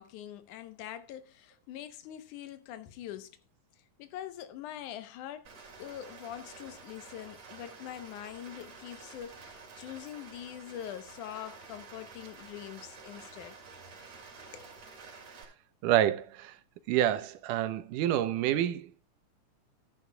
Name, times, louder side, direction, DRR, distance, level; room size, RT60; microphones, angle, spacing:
voice 1, 0.0-3.4 4.0-5.5 5.8-13.6 14.5-14.7, left 11 dB, 75° left, 2.5 m, -44 dB
Rain, 5.5-15.5, right 4 dB, 55° right, 3.8 m, -50 dB
voice 2, 15.8-16.5 16.9-19.0, right 12 dB, 90° right, 2.4 m, -28 dB
13.5 x 11.0 x 2.3 m
omnidirectional pair, 3.6 m